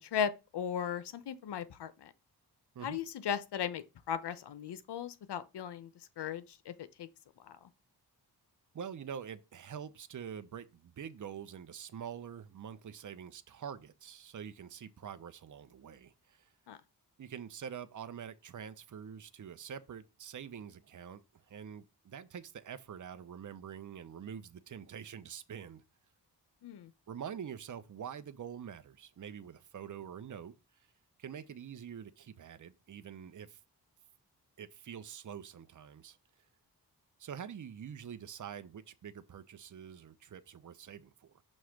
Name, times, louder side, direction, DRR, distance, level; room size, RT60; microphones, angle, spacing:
voice 1, 0.0-2.1 2.8-5.9 6.2-7.1 7.4-7.7 16.7-16.8 26.6-26.9, left 8 dB, 80° left, 0.9 m, -37 dB
voice 2, 8.7-16.5 17.2-25.8 27.1-30.5 31.2-33.6 34.6-36.2 37.2-41.4, right 8 dB, 50° right, 0.8 m, -46 dB
6.4 x 3.1 x 5.8 m
cardioid pair, 70°, 40 cm